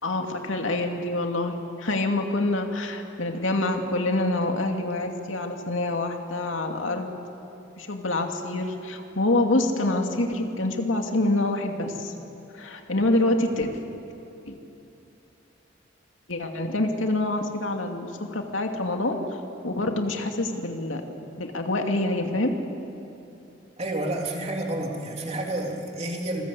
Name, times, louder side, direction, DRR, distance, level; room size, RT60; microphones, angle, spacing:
voice 1, 0.0-7.1 7.8-12.1 12.5-13.7 14.5-14.6 16.3-19.2 19.6-21.0 21.4-22.5, left 2 dB, 90° left, 3 dB, 2.6 m, -26 dB
voice 2, 23.8-26.4, right 1 dB, 35° right, 0 dB, 3.5 m, -30 dB
27.5 x 21.0 x 8.4 m, 2.9 s
head